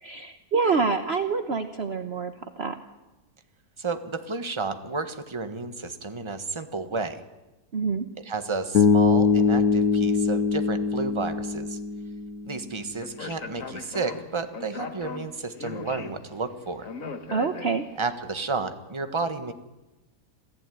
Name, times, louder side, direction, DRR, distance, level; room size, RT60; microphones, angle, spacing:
voice 1, 0.0-2.8 7.7-8.0 17.3-17.8, right 4 dB, 45° right, 8 dB, 1.2 m, -26 dB
voice 2, 3.8-7.2 8.2-11.8 12.4-16.9 18.0-19.5, right 4 dB, 20° right, 8 dB, 1.4 m, -31 dB
Bass guitar, 8.7-12.8, left 5 dB, 75° left, 1.5 m, -23 dB
Speech, 13.0-18.1, left 4 dB, 55° left, 2.0 m, -39 dB
27.0 x 15.0 x 9.3 m, 1.1 s
omnidirectional pair, 1.7 m